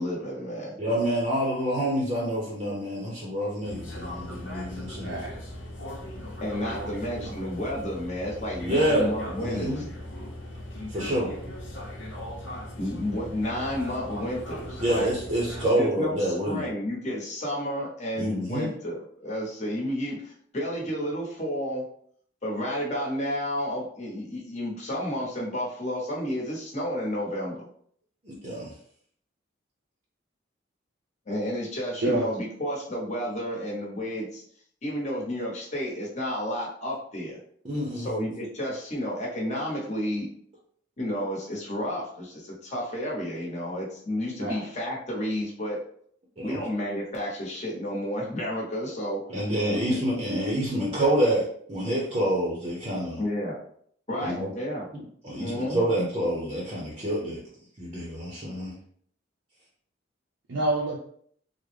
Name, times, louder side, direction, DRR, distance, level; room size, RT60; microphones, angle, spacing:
voice 1, 0.0-0.8 6.4-9.8 12.8-15.1 15.8-21.8 22.4-27.7 31.3-34.4 34.8-37.4 37.9-40.3 41.0-45.8 46.4-49.2 49.9-50.0 53.2-53.6 54.1-54.9 55.4-55.8, equal, 40° left, -4 dB, 1.0 m, -31 dB
voice 2, 0.8-5.2 8.6-9.8 10.9-11.3 14.8-16.7 18.2-18.7 28.2-28.7 37.6-38.3 46.4-46.6 49.3-53.2 54.2-54.5 55.2-57.4 57.8-58.8, right 1 dB, 30° right, -4 dB, 0.6 m, -27 dB
sound 1, 3.6-15.7, left 1 dB, 85° left, 0.8 m, -39 dB
voice 3, 5.0-5.3 6.6-7.3 32.0-32.3 44.4-44.6 49.4-49.5 49.7-49.8 60.5-61.0, right 2 dB, 85° right, -3 dB, 0.6 m, -29 dB
3.5 x 2.1 x 3.2 m, 0.62 s
head